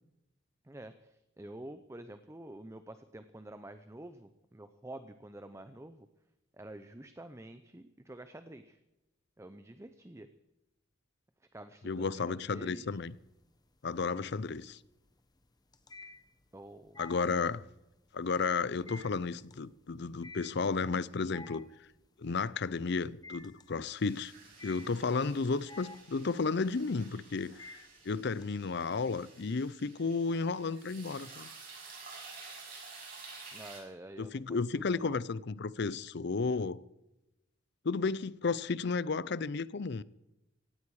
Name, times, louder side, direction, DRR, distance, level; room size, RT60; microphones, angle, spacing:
voice 1, 0.6-6.1 6.5-8.8 9.4-10.3 11.5-13.1 16.5-17.0 33.5-35.2, right 1 dB, 15° right, 0.6 m, -48 dB
voice 2, 11.8-13.1 13.8-14.8 17.0-17.6 18.1-21.7 22.2-24.3 24.6-27.8 28.0-31.5 34.2-36.8 37.8-40.0, left 4 dB, 60° left, 0.6 m, -33 dB
sound 1, 12.9-13.6 13.9-28.4, left 3 dB, 20° left, 1.1 m, -52 dB
sound 2, 23.9-33.8, right 4 dB, 45° right, 7.6 m, -51 dB
17.0 x 16.5 x 4.8 m
head